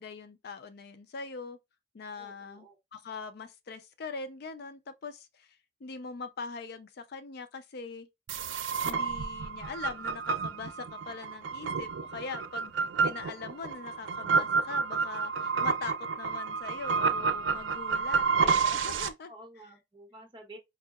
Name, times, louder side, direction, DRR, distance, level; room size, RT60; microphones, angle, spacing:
voice 1, 0.0-1.6 1.9-8.1 8.8-12.7 13.0-19.3, left 4 dB, 60° left, 0.4 m, -42 dB
voice 2, 2.2-2.8 19.3-20.6, right 1 dB, 25° right, 1.1 m, -50 dB
sound 1, 8.3-19.1, right 5 dB, 90° right, 0.5 m, -30 dB
4.7 x 2.7 x 2.3 m
head